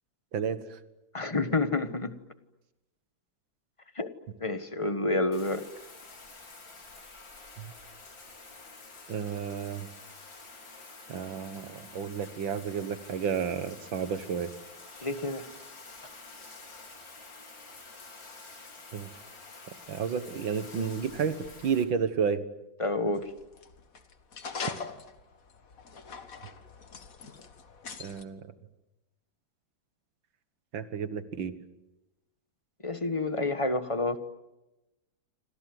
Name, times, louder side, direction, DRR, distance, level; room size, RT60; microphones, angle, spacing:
voice 1, 0.3-0.8 7.6-7.7 9.1-9.9 11.1-14.5 18.9-19.1 19.9-22.4 28.0-28.4 30.7-31.6, right 6 dB, 85° right, 11 dB, 2.2 m, -31 dB
voice 2, 1.1-2.2 3.9-4.1 4.4-5.7 15.0-15.5 22.8-23.3 32.8-34.2, left 2 dB, 20° left, 10 dB, 1.2 m, -29 dB
Bathtub (filling or washing), 5.3-21.8, left 3 dB, 75° left, 4.6 m, -49 dB
sound 1, 23.2-28.2, left 5 dB, 50° left, 1.9 m, -42 dB
28.5 x 26.0 x 7.9 m, 1.0 s
omnidirectional pair, 2.0 m